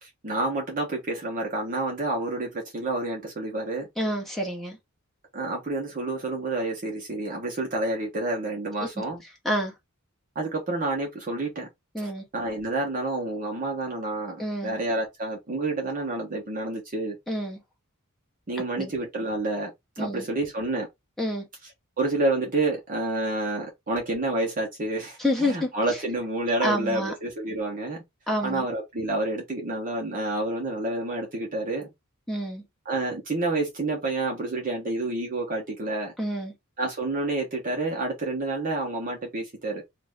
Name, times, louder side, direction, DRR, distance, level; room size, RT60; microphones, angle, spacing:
voice 1, 0.0-3.9 5.3-9.2 10.3-11.7 12.0-17.2 18.5-19.7 20.0-20.9 22.0-28.0 28.4-31.9 32.8-36.1 36.8-39.8, right 2 dB, 40° right, 1.0 m, -29 dB
voice 2, 4.0-4.8 8.8-9.0 9.4-9.7 11.9-12.2 14.4-14.8 17.3-17.6 18.8-18.9 20.0-20.2 21.2-21.4 25.2-25.7 26.6-27.1 28.3-28.7 32.3-32.6 36.2-36.5, equal, ahead, 0.9 m, -28 dB
2.6 x 2.5 x 3.3 m
head